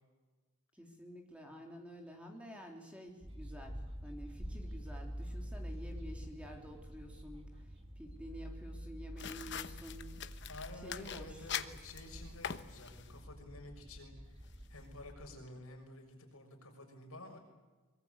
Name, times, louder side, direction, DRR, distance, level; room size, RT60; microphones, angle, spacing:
voice 1, 0.7-10.1 10.7-11.5, equal, 5° right, 2 dB, 3.3 m, -50 dB
sound 1, 3.2-15.4, equal, 25° right, 2.2 m, -47 dB
sound 2, 9.2-13.2, left 8 dB, 50° left, 1.1 m, -44 dB
voice 2, 10.5-14.4 14.7-17.4, left 2 dB, 75° left, 2 dB, 6.5 m, -51 dB
24.5 x 22.5 x 8.3 m, 1.3 s
head